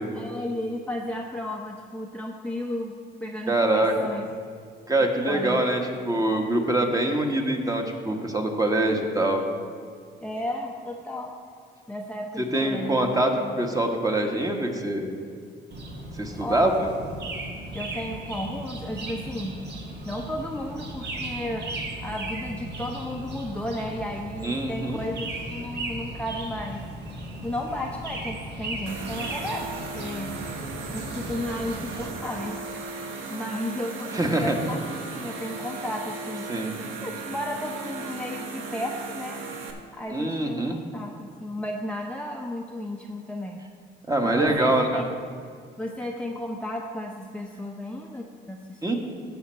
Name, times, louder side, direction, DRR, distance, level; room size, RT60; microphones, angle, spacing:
voice 1, 0.0-4.3 5.3-5.6 10.2-11.4 11.9-13.6 16.4-16.8 17.7-19.6 20.1-21.7 22.0-26.9 27.4-30.4 30.9-32.6 33.3-36.5 37.0-39.4 39.9-43.6 44.2-45.1 45.8-48.9, left 1 dB, 5° left, -1 dB, 0.7 m, -33 dB
voice 2, 3.5-4.1 4.9-5.8 6.0-9.4 12.4-15.1 16.2-16.7 24.4-25.0 34.1-34.6 36.5-36.7 40.1-40.8 44.1-45.0 48.8-49.0, right 1 dB, 20° right, 3 dB, 1.3 m, -24 dB
sound 1, 15.7-32.1, right 1 dB, 60° right, 1.5 m, -36 dB
sound 2, 28.9-39.7, right 4 dB, 85° right, 1.1 m, -37 dB
15.0 x 5.1 x 4.5 m, 2.2 s
cardioid pair, 90°, 20 cm